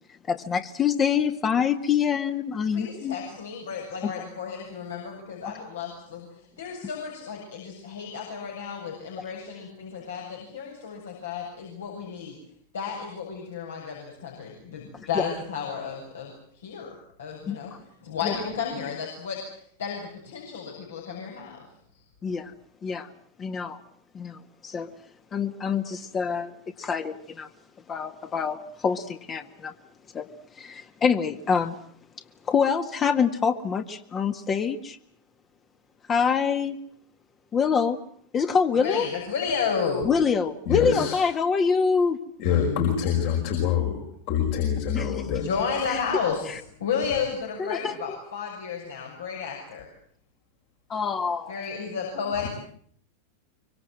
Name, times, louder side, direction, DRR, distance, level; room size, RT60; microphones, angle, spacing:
voice 1, 0.3-3.2 4.0-4.1 5.4-5.5 15.1-15.3 17.5-17.6 18.2-18.3 22.2-22.5 22.8-23.1 23.4-23.8 24.1-24.9 25.3-26.5 26.8-27.5 27.9-29.7 30.1-30.3 30.6-31.7 32.5-35.0 36.1-36.8 37.5-38.0 38.3-39.1 40.0-42.2 44.9-45.2 45.9-46.0 46.5-46.6 47.6-48.2 50.9-51.6, left 6 dB, 25° left, 7 dB, 1.9 m, -25 dB
voice 2, 2.7-6.3 6.6-12.4 12.7-16.9 17.2-17.7 18.0-19.4 19.8-21.6 38.8-40.1 45.3-49.9 51.5-52.5, left 6 dB, 70° left, 0 dB, 7.7 m, -32 dB
voice 3, 40.7-41.2 42.4-45.5 52.4-52.5, left 8 dB, 50° left, 3 dB, 5.3 m, -25 dB
25.0 x 24.5 x 7.7 m, 0.62 s
figure-of-eight pair, 90°, 0 cm